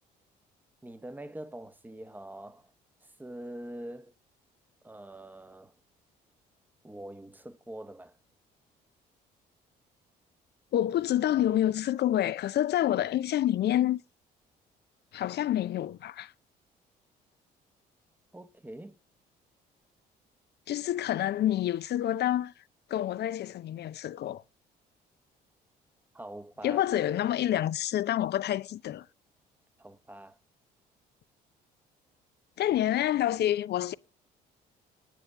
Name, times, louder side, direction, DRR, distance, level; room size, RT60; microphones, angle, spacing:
voice 1, 0.8-2.7 3.0-4.1 4.8-5.7 6.8-8.2 18.3-19.0 26.1-26.8 29.8-30.4, right 1 dB, 10° right, 0.9 m, -44 dB
voice 2, 10.7-14.0 15.1-16.3 20.7-22.5 22.9-24.4 26.6-29.1 32.6-33.9, left 12 dB, 55° left, 0.6 m, -28 dB
10.0 x 9.1 x 6.5 m
hypercardioid pair, 55°, 21 cm